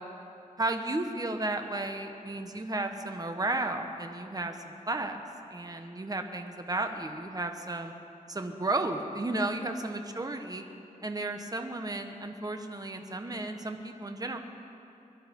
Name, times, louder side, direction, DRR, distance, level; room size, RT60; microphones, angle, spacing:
voice 1, 0.6-5.2 5.5-7.9 8.3-10.6 11.0-14.4, right 2 dB, 25° right, 5 dB, 1.2 m, -33 dB
22.5 x 11.5 x 5.4 m, 2.7 s
wide cardioid pair, 95°, 14 cm